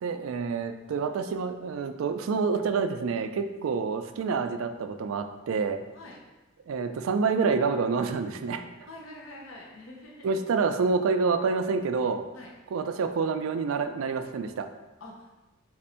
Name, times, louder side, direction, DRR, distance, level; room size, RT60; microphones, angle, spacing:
voice 1, 0.0-5.8 6.7-8.6 10.2-12.2 12.7-14.7, right 5 dB, 90° right, 8 dB, 0.4 m, -27 dB
voice 2, 8.9-10.4 12.3-12.5 15.0-15.3, left 1 dB, 70° left, -2 dB, 0.7 m, -45 dB
4.2 x 2.6 x 4.2 m, 1.1 s
head